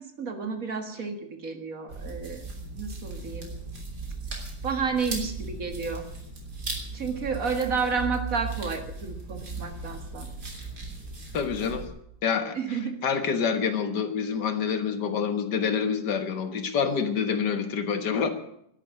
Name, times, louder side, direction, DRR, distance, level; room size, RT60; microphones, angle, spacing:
voice 1, 0.0-2.4 2.7-3.5 4.6-6.0 6.9-10.3 12.5-13.0, right 5 dB, 55° right, 5 dB, 2.2 m, -31 dB
sound 1, 1.9-11.8, right 3 dB, 70° right, 3.9 m, -37 dB
voice 2, 11.3-11.9 12.2-12.6 13.0-18.3, left 6 dB, 85° left, 8 dB, 2.1 m, -27 dB
12.0 x 11.0 x 9.2 m, 0.75 s
omnidirectional pair, 1.8 m